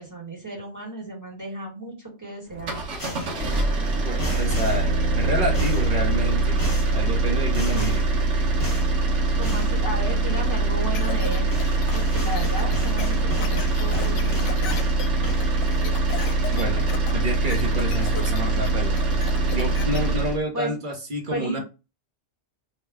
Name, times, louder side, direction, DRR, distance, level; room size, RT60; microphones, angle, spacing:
voice 1, 0.0-2.8 9.4-11.5 11.9-14.8 20.5-20.8 21.3-21.6, right 1 dB, 15° right, -3 dB, 1.2 m, -33 dB
sound 1, 2.5-20.4, right 2 dB, 80° right, 1.2 m, -23 dB
sound 2, 3.0-3.4 4.2-4.9 5.5-5.9 6.6-7.0 7.5-8.1 8.6-8.9 9.4-9.8 11.2-11.3 11.5-15.0 15.2-15.9 16.2-16.6, left 1 dB, 20° left, 0.8 m, -35 dB
voice 2, 4.0-6.7 6.9-8.0 16.5-19.2 19.5-21.6, right 1 dB, 45° right, 2 dB, 1.0 m, -29 dB
sound 3, 10.9-20.0, left 7 dB, 80° left, 0.9 m, -37 dB
3.0 x 2.2 x 3.3 m, 0.29 s
omnidirectional pair, 1.2 m